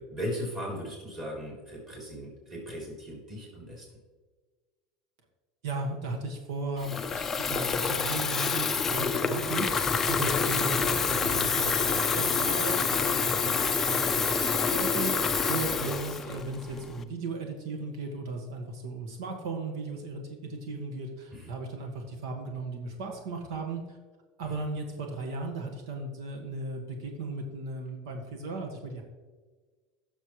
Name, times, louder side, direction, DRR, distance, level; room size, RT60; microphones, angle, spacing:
voice 1, 0.0-3.9 10.7-11.4 15.7-15.9 21.3-21.5 24.4-24.6, equal, 20° right, -3 dB, 3.3 m, -38 dB
voice 2, 5.6-9.7 10.1-23.8 24.4-29.0, right 3 dB, 80° right, 3 dB, 1.6 m, -36 dB
Water tap faucet / Fill (with liquid), 6.8-17.0, left 5 dB, 10° left, 0.4 m, -27 dB
16.5 x 6.7 x 3.1 m, 1.4 s
cardioid pair, 180°, 2 cm